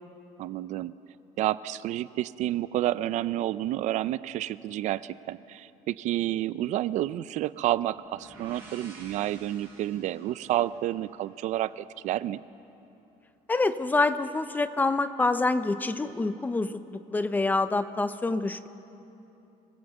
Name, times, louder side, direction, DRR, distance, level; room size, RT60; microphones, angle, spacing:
voice 1, 0.4-0.9 1.4-12.4, right 13 dB, 60° right, 16 dB, 0.5 m, -30 dB
sound 1, 7.8-11.6, right 2 dB, 15° right, 7.2 m, -51 dB
voice 2, 13.5-18.7, left 3 dB, 15° left, 11 dB, 0.7 m, -26 dB
26.0 x 19.5 x 7.9 m, 2.9 s
cardioid pair, 165°, 14 cm